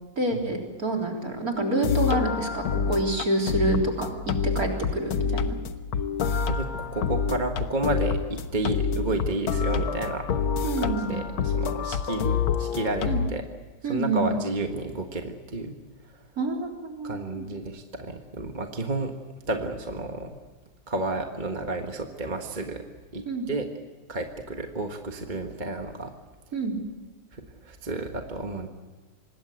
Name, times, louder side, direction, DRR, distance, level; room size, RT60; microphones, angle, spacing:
voice 1, 0.2-5.6 10.6-11.1 13.1-13.2 13.8-14.3 16.4-17.5 23.3-23.5 26.5-26.8, right 2 dB, 40° right, 1 dB, 4.1 m, -27 dB
sound 1, 1.6-13.3, left 6 dB, 75° left, 1.9 m, -27 dB
voice 2, 6.5-10.3 10.8-13.4 13.8-15.8 16.0-16.3 17.0-19.1 19.5-20.4 20.9-22.8 23.1-23.7 24.1-26.1 27.3-28.7, right 2 dB, 25° right, 4 dB, 1.4 m, -31 dB
25.5 x 20.5 x 8.0 m, 1.4 s
omnidirectional pair, 2.3 m